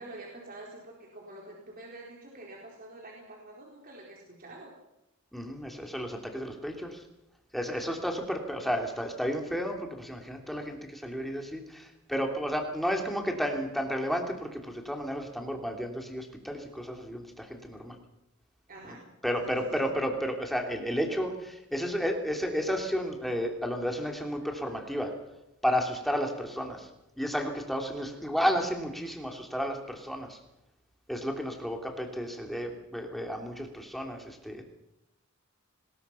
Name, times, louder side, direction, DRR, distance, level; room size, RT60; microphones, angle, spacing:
voice 1, 0.0-4.7 18.7-19.0 19.4-19.9, right 2 dB, 45° right, -2 dB, 4.1 m, -47 dB
voice 2, 5.3-7.0 7.5-18.0 19.2-25.2 25.6-26.9 27.2-30.4 31.1-34.6, equal, ahead, 2 dB, 3.2 m, -32 dB
25.5 x 20.5 x 5.8 m, 0.89 s
head